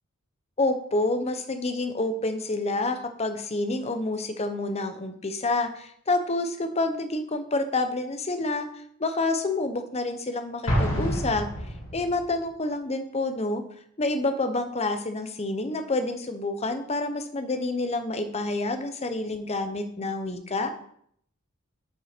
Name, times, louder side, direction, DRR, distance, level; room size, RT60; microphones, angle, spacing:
voice 1, 0.6-8.7 9.0-11.5 11.9-13.6 14.0-20.7, left 2 dB, 30° left, 8 dB, 0.8 m, -28 dB
Explosion, 10.7-12.3, equal, 65° left, 2.5 m, -27 dB
7.4 x 5.4 x 5.1 m, 0.68 s
head